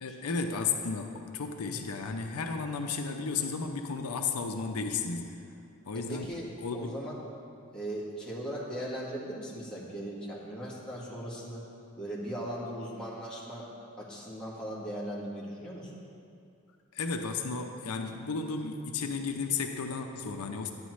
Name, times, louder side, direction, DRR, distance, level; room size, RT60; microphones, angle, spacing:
voice 1, 0.0-5.4 5.8-6.9 16.9-20.7, left 4 dB, 90° left, 5 dB, 0.6 m, -33 dB
voice 2, 5.9-6.5 6.7-7.2 7.7-11.6 12.0-15.9, right 1 dB, 5° left, -7 dB, 1.6 m, -38 dB
11.5 x 8.9 x 3.1 m, 2.5 s
head